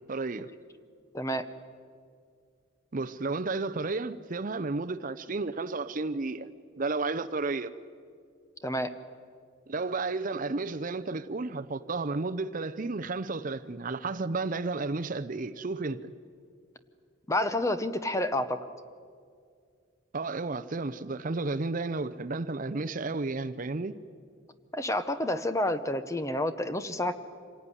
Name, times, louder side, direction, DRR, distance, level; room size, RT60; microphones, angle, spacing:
voice 1, 0.1-0.5 2.9-6.5 6.8-7.7 9.7-16.1 20.1-23.9, right 3 dB, 40° right, 0.6 m, -32 dB
voice 2, 1.1-1.5 8.6-8.9 17.3-18.6 24.7-27.2, left 1 dB, 15° left, 0.8 m, -29 dB
26.5 x 17.5 x 9.9 m
head